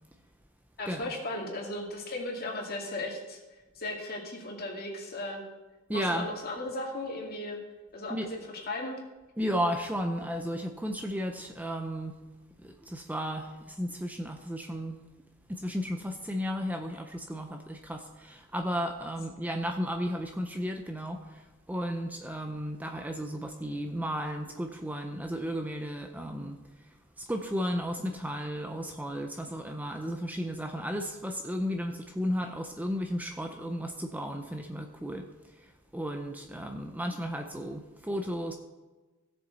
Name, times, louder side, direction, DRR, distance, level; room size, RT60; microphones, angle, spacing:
voice 1, 0.8-3.4 3.8-5.4 5.9-7.6 7.9-9.0, left 2 dB, 45° left, 0 dB, 2.2 m, -36 dB
voice 2, 5.9-6.3 8.1-8.3 9.4-12.2 12.6-15.0 15.5-38.5, equal, 10° right, 4 dB, 0.6 m, -34 dB
16.0 x 6.9 x 4.1 m, 1.2 s
head